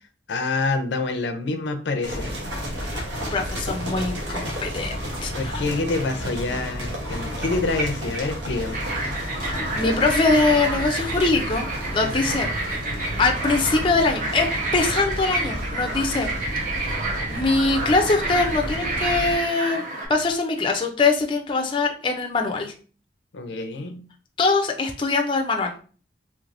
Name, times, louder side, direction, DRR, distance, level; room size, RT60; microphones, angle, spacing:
voice 1, 0.3-2.3 5.3-8.8 12.0-12.4 17.0-17.1 23.3-24.1, left 3 dB, 80° left, 7 dB, 0.5 m, -27 dB
sound 1, 2.0-19.4, equal, 80° right, 1.1 m, -31 dB
voice 2, 3.3-5.0 5.2-5.6 9.4-12.5 13.2-16.3 16.6-16.7 17.3-19.8 20.1-22.7 24.4-25.8, left 3 dB, 30° left, 3 dB, 0.4 m, -23 dB
sound 2, 4.5-5.6 5.9-6.0 7.4-8.6 8.9-9.0 9.2-9.3 9.7-11.2 12.7-13.9 14.1-14.2 14.5-14.6 15.0-15.7, right 2 dB, 10° right, 0.8 m, -36 dB
sound 3, 8.7-20.1, right 2 dB, 50° right, 0.9 m, -30 dB
3.3 x 3.0 x 2.5 m, 0.39 s
head